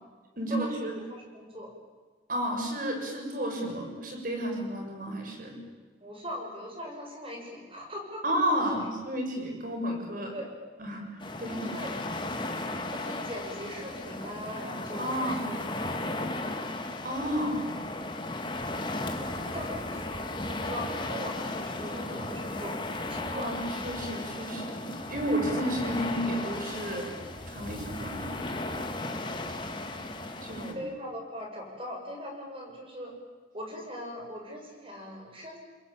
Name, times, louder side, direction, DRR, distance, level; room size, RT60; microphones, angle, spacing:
voice 1, 0.4-0.9 2.3-5.5 8.2-10.3 10.8-11.1 11.4-11.7 15.0-15.4 17.0-17.7 23.3-23.5 23.8-27.1 27.5-28.4 30.4-30.8, equal, 50° right, 2 dB, 7.0 m, -32 dB
voice 2, 0.9-1.7 6.0-8.2 10.3-10.5 11.5-12.0 12.9-16.4 19.2-22.8 23.0-23.6 29.3-29.5 30.7-33.1 33.5-35.6, equal, 30° right, 1 dB, 6.9 m, -40 dB
sound 1, 11.2-30.7, left 2 dB, 25° left, 2.4 m, -35 dB
29.5 x 22.0 x 9.1 m, 1.4 s
head